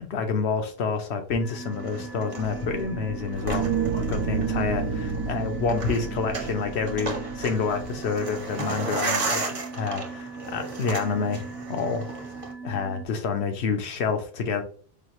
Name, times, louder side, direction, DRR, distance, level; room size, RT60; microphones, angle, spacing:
voice 1, 0.0-3.7 4.1-9.4 9.7-11.4 11.7-12.1 12.6-14.6, left 5 dB, 80° left, 6 dB, 1.0 m, -28 dB
sound 1, 1.4-13.1, right 4 dB, ahead, 0.3 m, -40 dB
sound 2, 1.7-12.5, right 3 dB, 35° right, 0.8 m, -35 dB
sound 3, 2.4-8.4, right 5 dB, 80° right, 0.9 m, -30 dB
4.9 x 2.4 x 3.0 m, 0.44 s
omnidirectional pair, 1.1 m